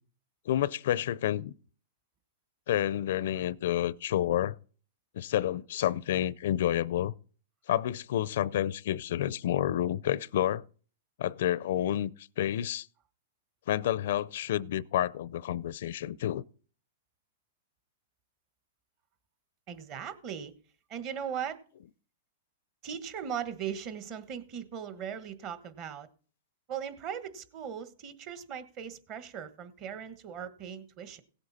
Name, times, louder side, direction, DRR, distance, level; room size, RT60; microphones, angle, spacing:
voice 1, 0.5-1.5 2.7-4.5 5.1-7.1 7.7-10.6 11.2-12.9 13.7-16.4, left 12 dB, 65° left, 0.4 m, -29 dB
voice 2, 19.7-20.5 20.9-21.6 22.8-26.1 26.7-31.2, right 8 dB, 35° right, 1.3 m, -38 dB
17.5 x 8.0 x 4.1 m
hypercardioid pair, 145°, 0 cm